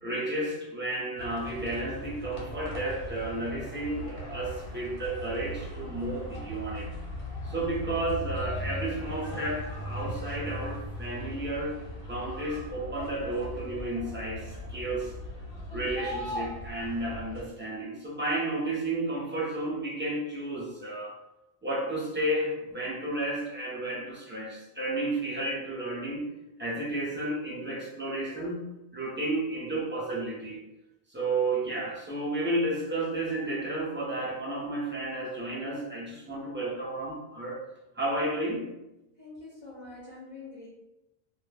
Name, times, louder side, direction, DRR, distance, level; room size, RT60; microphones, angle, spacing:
voice 1, 0.0-6.9 7.4-11.8 12.1-15.1 15.7-21.2 21.6-26.2 26.6-28.7 28.9-30.6 31.1-37.6 37.9-38.7, right 2 dB, 15° right, -6 dB, 0.5 m, -32 dB
sound 1, 1.2-17.4, equal, 90° left, 1.0 m, -38 dB
voice 2, 39.2-40.7, left 3 dB, 40° left, -6 dB, 0.6 m, -45 dB
2.2 x 2.1 x 3.2 m, 0.94 s
omnidirectional pair, 1.1 m